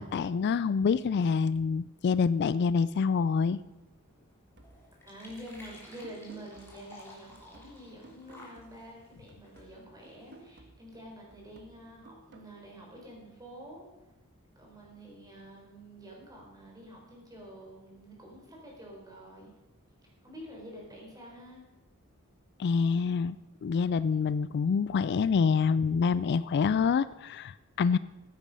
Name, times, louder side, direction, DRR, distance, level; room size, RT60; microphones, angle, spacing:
voice 1, 0.0-3.6 22.6-23.4 23.6-28.0, left 5 dB, 50° left, 16 dB, 0.3 m, -26 dB
sound 1, 3.4-10.6, left 1 dB, 10° left, 3.1 m, -55 dB
sound 2, 4.6-9.0 9.3-12.6, right 2 dB, 55° right, 1.5 m, -56 dB
voice 2, 5.0-13.9 14.6-19.5 20.2-21.6, equal, 15° right, -2 dB, 4.2 m, -48 dB
14.5 x 9.4 x 5.4 m, 1.1 s
head